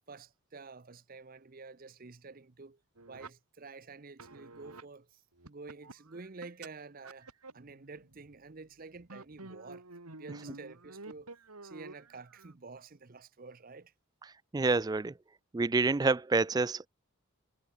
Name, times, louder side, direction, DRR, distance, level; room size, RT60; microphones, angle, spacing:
voice 1, 0.1-2.8 3.1-9.8 10.2-11.3 11.6-13.9, right 4 dB, 40° right, 0.7 m, -49 dB
sound 1, 3.0-3.3 4.2-4.8 5.4-6.7 7.0-8.7 9.0-12.5, right 3 dB, 90° right, 2.9 m, -50 dB
voice 2, 14.2-15.1 15.5-16.9, right 3 dB, 15° right, 0.3 m, -28 dB
head